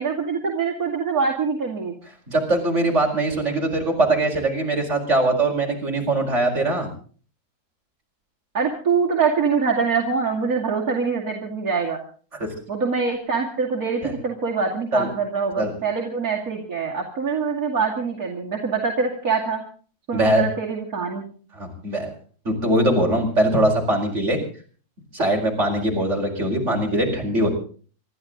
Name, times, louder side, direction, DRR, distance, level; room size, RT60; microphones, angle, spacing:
voice 1, 0.0-2.0 8.5-12.0 12.7-19.6 20.1-21.2, right 5 dB, 65° right, -2 dB, 2.9 m, -24 dB
voice 2, 2.3-6.9 14.0-14.1 14.9-15.1 15.6-15.7 20.1-20.4 21.6-22.1 22.4-24.4 25.1-27.5, right 1 dB, 50° right, 1 dB, 5.2 m, -21 dB
26.5 x 12.5 x 3.8 m, 0.42 s
omnidirectional pair, 1.6 m